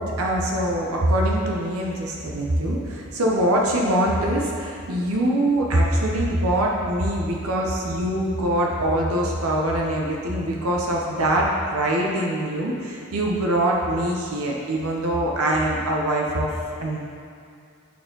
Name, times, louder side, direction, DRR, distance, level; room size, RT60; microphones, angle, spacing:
voice 1, 0.0-16.5 16.8-17.0, right 1 dB, 75° right, -2 dB, 0.8 m, -23 dB
8.4 x 4.4 x 3.8 m, 2.4 s
head